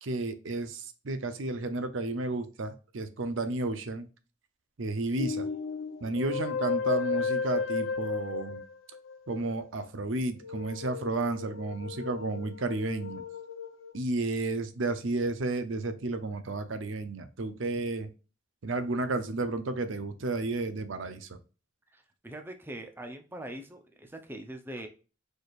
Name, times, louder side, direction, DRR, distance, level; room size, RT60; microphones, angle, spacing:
voice 1, 0.0-4.1 4.8-5.5 6.0-8.6 9.3-13.2 13.9-18.1 18.6-21.4, right 2 dB, 70° right, 10 dB, 0.6 m, -32 dB
sound 1, 5.2-9.7 10.4-13.9, left 5 dB, 75° left, 0.7 m, -34 dB
voice 2, 21.9-24.9, right 1 dB, 10° right, 5 dB, 0.6 m, -42 dB
4.9 x 4.2 x 2.4 m, 0.34 s
head